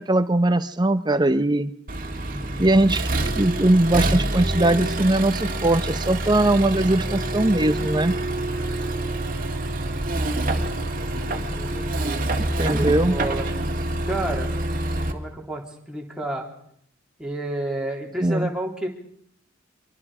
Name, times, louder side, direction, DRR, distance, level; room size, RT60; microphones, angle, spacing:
voice 1, 0.0-1.7 2.6-3.0 3.4-8.2 12.6-13.2 18.2-18.5, right 1 dB, 20° right, 11 dB, 0.9 m, -20 dB
Accelerating revving vroom, 1.9-15.1, right 1 dB, 45° right, 2.0 m, -26 dB
voice 2, 2.3-2.7 10.9-12.2 12.7-13.5 14.1-14.5 15.1-15.6 15.9-16.5 17.2-18.9, right 1 dB, 5° right, -1 dB, 3.5 m, -31 dB
25.5 x 23.5 x 5.0 m, 0.69 s
head